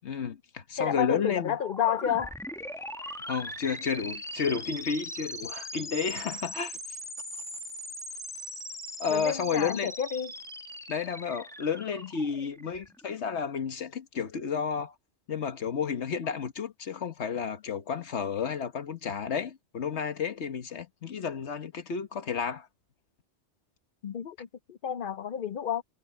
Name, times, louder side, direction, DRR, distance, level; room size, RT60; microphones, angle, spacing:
voice 1, 0.0-1.6 3.3-6.8 9.0-9.9 10.9-14.9 15.3-22.7, left 6 dB, 80° left, 1.5 m, -31 dB
voice 2, 0.8-2.3 3.0-3.1 9.1-10.3 24.0-25.8, left 9 dB, 55° left, 0.8 m, -30 dB
sound 1, 1.5-13.2, equal, 5° left, 1.7 m, -40 dB
omnidirectional pair, 1.1 m